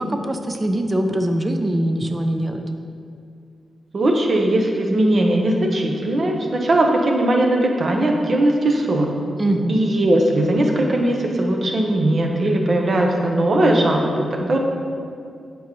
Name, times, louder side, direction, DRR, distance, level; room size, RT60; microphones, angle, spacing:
voice 1, 0.0-2.7 9.4-9.7, right 1 dB, 20° right, 5 dB, 0.4 m, -22 dB
voice 2, 3.9-9.1 9.7-14.6, right 1 dB, 45° right, 1 dB, 0.9 m, -19 dB
9.2 x 5.5 x 3.0 m, 2.3 s
wide cardioid pair, 120°, 0 cm